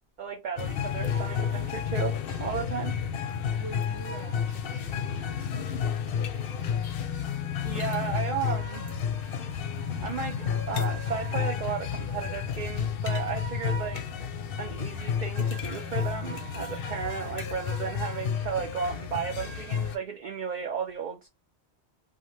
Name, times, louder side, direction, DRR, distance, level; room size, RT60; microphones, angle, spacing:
voice 1, 0.2-2.9 7.6-8.8 10.0-14.0 14.6-21.3, right 6 dB, 55° right, 0.6 m, -34 dB
sound 1, 0.6-20.0, left 7 dB, 65° left, 0.7 m, -31 dB
voice 2, 3.5-6.8, right 4 dB, 80° right, 0.9 m, -47 dB
2.7 x 2.1 x 3.2 m
omnidirectional pair, 1.1 m